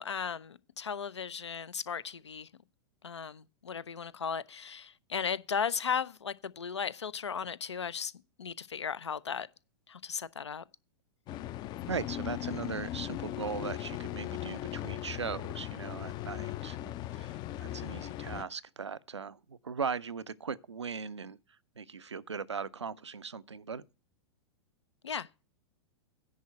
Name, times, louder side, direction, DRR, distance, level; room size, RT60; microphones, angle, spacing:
voice 1, 0.0-2.5 3.0-8.1 8.4-9.5 9.9-10.6 25.0-25.3, left 6 dB, 80° left, 0.6 m, -36 dB
sound 1, 11.3-18.4, left 13 dB, 30° left, 0.5 m, -38 dB
voice 2, 11.9-21.4 21.8-23.8, right 5 dB, 85° right, 0.6 m, -39 dB
10.5 x 4.3 x 7.6 m
figure-of-eight pair, 100°, 14 cm